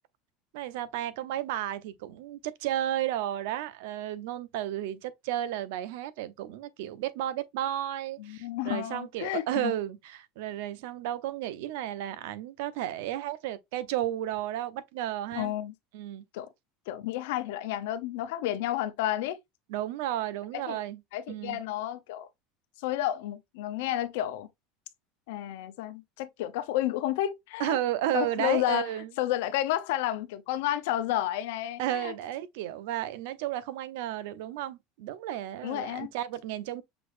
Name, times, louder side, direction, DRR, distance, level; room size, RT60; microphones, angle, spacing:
voice 1, 0.5-15.5 15.9-16.2 19.7-21.0 21.3-21.6 27.6-29.1 31.8-36.8, right 12 dB, 75° right, 0.7 m, -33 dB
voice 2, 8.2-9.7 15.3-15.7 16.3-16.5 16.9-19.4 20.7-20.8 21.1-22.3 22.8-24.5 25.3-27.8 28.1-28.9 29.2-32.1 35.6-36.1, left 13 dB, 80° left, 0.7 m, -31 dB
6.0 x 3.3 x 2.6 m
supercardioid pair, 120°, 0 cm